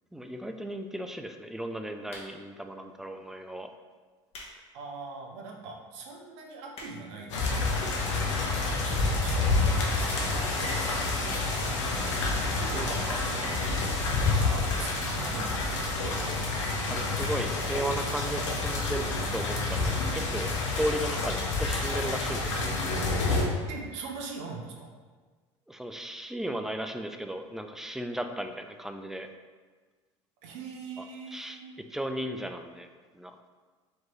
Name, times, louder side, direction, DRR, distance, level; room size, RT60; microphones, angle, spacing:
voice 1, 0.1-3.7 10.4-10.6 12.7-13.2 16.9-19.1 19.3-22.7 25.7-29.3 31.3-31.6 31.9-32.9 33.1-33.3, right 1 dB, 5° right, 6 dB, 0.3 m, -35 dB
sound 1, 2.0-2.6 3.3-3.5 4.0-4.6 5.0-5.1 5.7-5.8 6.0-6.1 6.4-7.2 8.0-8.1 8.8-9.2 9.5-9.6 9.8-9.9 10.1-10.2 10.5-10.8 11.2-11.5 11.9-12.0 12.2-12.3, left 1 dB, 40° left, 1.0 m, -46 dB
voice 2, 4.7-11.3 11.6-11.8 12.3-15.6 16.0-16.7 23.7-24.9 30.4-31.9, right 4 dB, 70° right, 1 dB, 0.8 m, -42 dB
sound 2, 7.3-23.4, left 3 dB, 80° left, 0.7 m, -28 dB
4.5 x 2.9 x 3.1 m, 1.4 s
hypercardioid pair, 75°, 15 cm